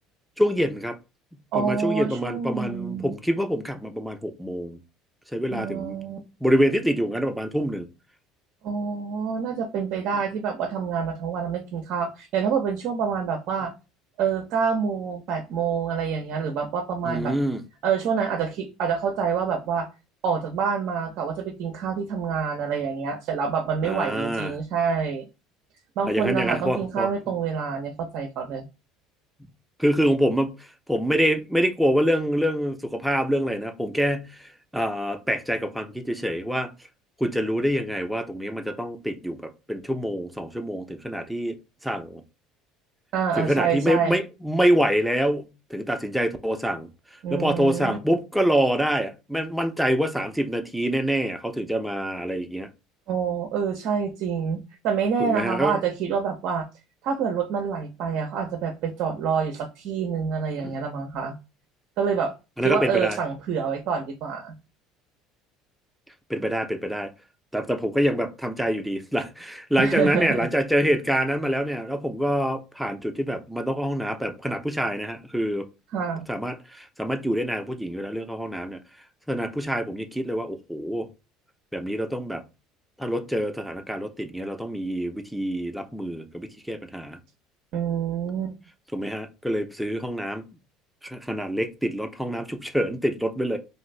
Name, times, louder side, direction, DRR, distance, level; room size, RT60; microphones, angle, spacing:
voice 1, 0.4-1.0 1.3-4.8 5.3-6.0 6.4-7.9 17.0-17.6 23.8-24.5 26.1-27.1 29.8-36.7 37.2-41.6 41.8-42.2 43.4-46.9 47.3-52.7 55.2-55.8 60.6-60.8 62.6-63.2 66.3-67.1 67.5-75.7 76.3-78.8 79.3-81.1 81.7-82.4 83.0-87.2 88.9-90.5 91.0-93.6, equal, ahead, 0.6 m, -26 dB
voice 2, 1.5-3.2 5.5-6.2 8.6-13.7 14.2-17.3 17.8-19.9 20.2-25.3 26.0-28.6 43.1-44.2 47.2-48.0 53.1-56.7 57.0-61.4 62.0-62.3 62.6-64.5 69.8-70.5 75.9-76.3 87.7-88.5, right 6 dB, 60° right, 0.5 m, -27 dB
2.7 x 2.4 x 3.2 m
hypercardioid pair, 70°, 0 cm